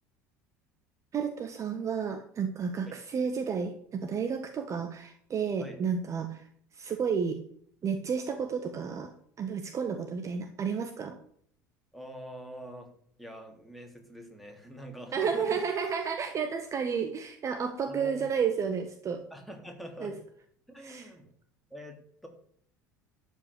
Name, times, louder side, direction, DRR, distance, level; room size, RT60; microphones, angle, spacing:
voice 1, 1.1-6.5 6.7-7.4 7.8-11.2 15.1-19.2 20.0-20.1 20.8-21.1, right 6 dB, 30° right, 8 dB, 1.3 m, -31 dB
voice 2, 11.9-12.9 13.2-15.6 17.9-18.3 19.3-20.1 20.7-21.3 21.7-22.3, equal, ahead, 1 dB, 3.4 m, -44 dB
12.5 x 5.7 x 8.7 m, 0.63 s
figure-of-eight pair, 70°, 10 cm